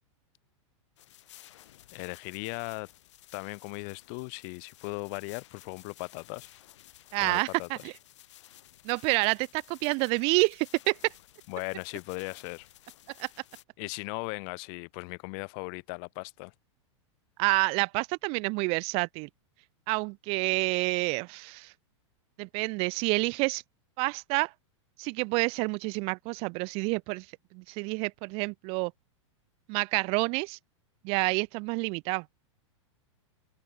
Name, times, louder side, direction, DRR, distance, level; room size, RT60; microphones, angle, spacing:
sound 1, 1.0-13.6, left 14 dB, 70° left, 7.3 m, -55 dB
voice 1, 1.9-2.9 3.3-6.5 7.2-7.7 11.5-12.7 13.8-16.5, left 40 dB or more, 45° left, 1.9 m, -38 dB
voice 2, 7.1-7.9 8.8-11.1 13.2-13.3 17.4-19.3 19.9-21.7 22.4-23.6 24.0-24.5 25.0-27.3 27.5-28.9 29.7-30.6 31.0-32.2, right 30 dB, 40° right, 0.4 m, -28 dB
open air
hypercardioid pair, 135°, 16 cm